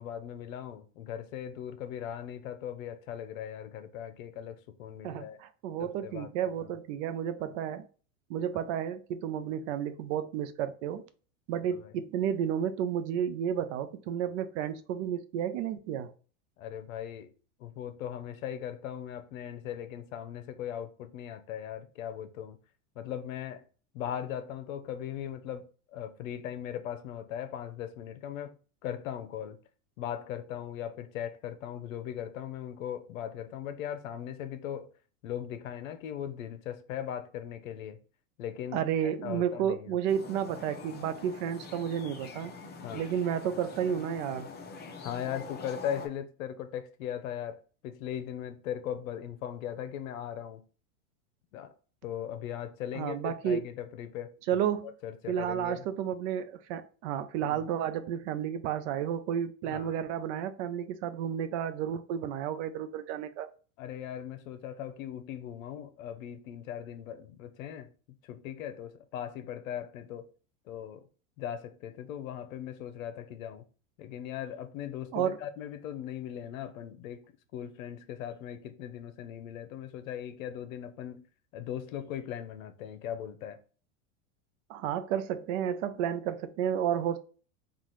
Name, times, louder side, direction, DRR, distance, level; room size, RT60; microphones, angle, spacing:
voice 1, 0.0-5.4 5.8-6.3 6.6-6.7 8.5-8.7 11.7-11.9 16.6-17.3 17.6-22.6 23.0-23.6 23.9-28.5 28.8-29.6 30.0-34.9 35.2-38.0 38.4-38.8 39.2-39.9 42.8-43.1 45.0-50.6 51.5-51.7 52.0-54.6 55.0-55.8 57.4-57.6 59.7-59.9 63.8-67.9 68.2-70.3 70.7-71.1 71.4-73.7 74.0-81.2 81.5-83.6, left 10 dB, 75° left, 0.7 m, -39 dB
voice 2, 5.0-7.9 8.3-11.1 11.5-16.1 38.7-42.5 42.9-44.5 52.9-53.6 54.5-54.9 55.3-63.5 75.1-75.4 84.7-87.2, right 9 dB, 60° right, 0.6 m, -32 dB
sound 1, 40.1-46.1, left 4 dB, 25° left, 0.7 m, -45 dB
3.9 x 2.5 x 3.1 m
hypercardioid pair, 110°, 41 cm